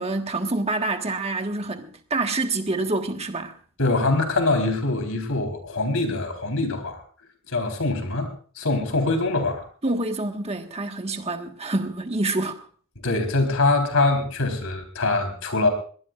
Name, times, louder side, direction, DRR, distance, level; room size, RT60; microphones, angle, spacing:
voice 1, 0.0-3.5 9.8-12.6, right 2 dB, 30° right, 1.5 m, -27 dB
voice 2, 3.8-7.0 7.5-8.3 8.6-9.6 13.0-15.7, left 2 dB, 75° left, 3.8 m, -23 dB
22.0 x 18.5 x 2.4 m
head